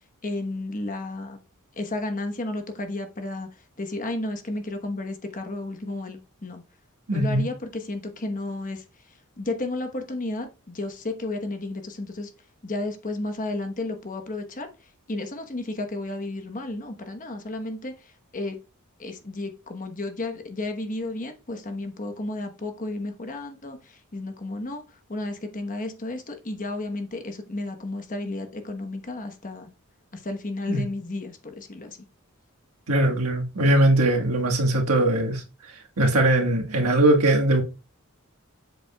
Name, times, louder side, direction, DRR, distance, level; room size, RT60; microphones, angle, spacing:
voice 1, 0.2-1.4 1.8-3.5 3.8-6.6 7.1-8.8 9.4-12.3 12.6-14.7 15.1-17.9 18.3-18.6 19.0-23.8 24.1-24.8 25.1-29.7 30.1-32.0, left 2 dB, 35° left, 1.1 m, -32 dB
voice 2, 7.1-7.4 30.7-30.8 32.9-35.4 36.0-37.6, right 1 dB, 75° right, 1.6 m, -20 dB
7.5 x 7.4 x 2.3 m
head